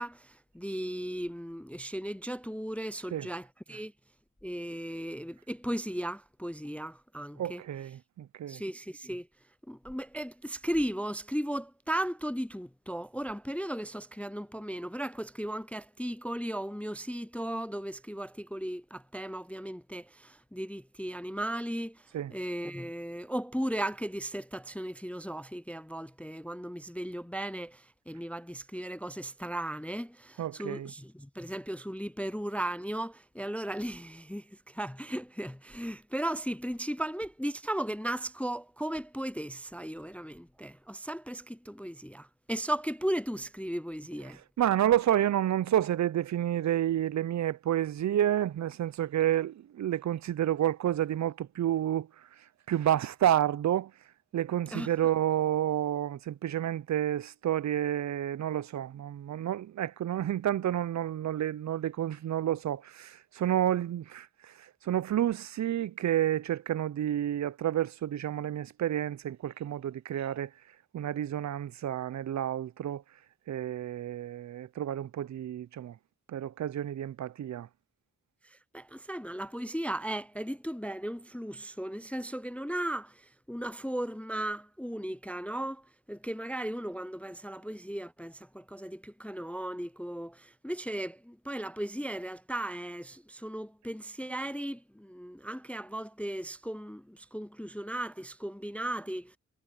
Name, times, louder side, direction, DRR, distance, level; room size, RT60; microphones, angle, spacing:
voice 1, 0.0-3.9 4.4-7.6 8.5-9.3 9.7-22.0 22.3-44.4 54.7-54.9 78.7-85.8 86.1-99.4, right 1 dB, 5° left, 0.3 m, -36 dB
voice 2, 7.4-8.6 22.1-22.3 30.4-30.9 44.3-52.3 52.7-53.9 54.3-70.5 70.9-73.0 73.5-76.0 76.3-77.7, right 11 dB, 65° right, 0.5 m, -30 dB
cardioid pair, 80°, 30 cm